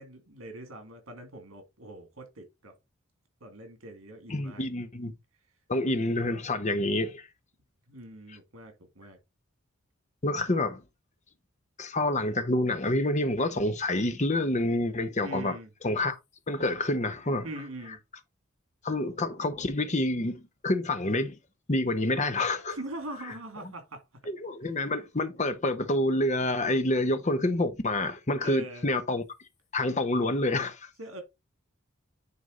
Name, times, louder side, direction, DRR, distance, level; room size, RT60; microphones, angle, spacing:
voice 1, 0.0-2.7 3.4-4.6 7.9-9.2 15.2-15.7 17.4-18.0 22.7-24.0 28.4-28.9 31.0-31.2, right 2 dB, 85° right, 2.4 m, -42 dB
voice 2, 4.3-5.1 5.7-7.3 10.2-10.8 11.8-15.6 15.8-16.1 16.5-17.5 18.8-21.4 21.7-22.8 24.3-29.2 29.7-30.9, left 1 dB, 35° left, 0.9 m, -28 dB
9.5 x 3.6 x 3.8 m
head